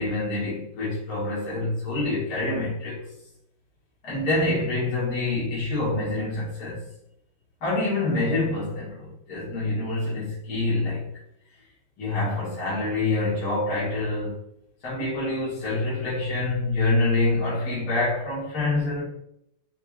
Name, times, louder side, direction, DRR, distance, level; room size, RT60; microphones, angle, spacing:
voice 1, 0.0-3.0 4.0-6.8 7.6-11.1 12.0-14.3 14.8-19.0, left 2 dB, 45° left, -9 dB, 2.1 m, -26 dB
4.8 x 3.3 x 2.4 m, 0.79 s
omnidirectional pair, 2.4 m